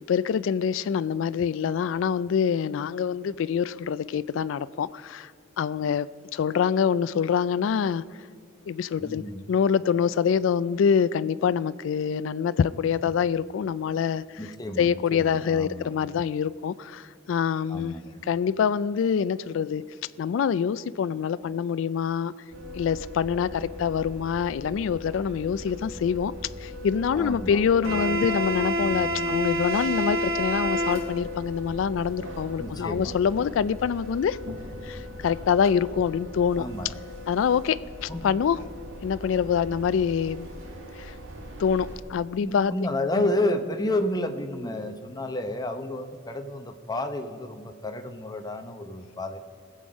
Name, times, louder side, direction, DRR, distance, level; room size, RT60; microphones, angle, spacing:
voice 1, 0.1-5.3 5.6-8.0 8.7-9.2 9.5-18.0 18.2-19.8 20.2-22.3 22.7-26.3 26.6-34.4 34.8-36.6 37.3-38.6 39.0-40.5 41.0-41.1 41.6-42.7 43.2-43.3, left 7 dB, 70° left, 17 dB, 0.3 m, -25 dB
voice 2, 9.0-9.4 14.4-15.9 17.7-18.2 27.2-28.4 28.8-29.4 32.6-33.1 36.6-37.1 38.1-38.3 42.4-49.4, left 1 dB, 20° left, 6 dB, 0.8 m, -31 dB
sound 1, 22.5-42.0, equal, 85° right, 1.7 m, -34 dB
19.5 x 7.8 x 5.2 m, 2.2 s
head